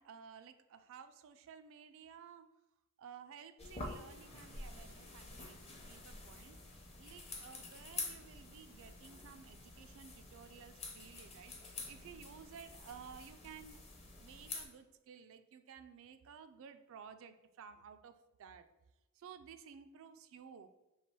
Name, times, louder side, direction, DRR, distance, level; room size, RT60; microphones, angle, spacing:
voice 1, 0.0-2.5 3.0-6.6 7.0-18.7 19.1-20.7, right 7 dB, 65° right, 10 dB, 0.3 m, -55 dB
sound 1, 3.6-14.6, left 3 dB, 30° left, 0.7 m, -48 dB
3.2 x 2.9 x 4.5 m, 0.98 s
head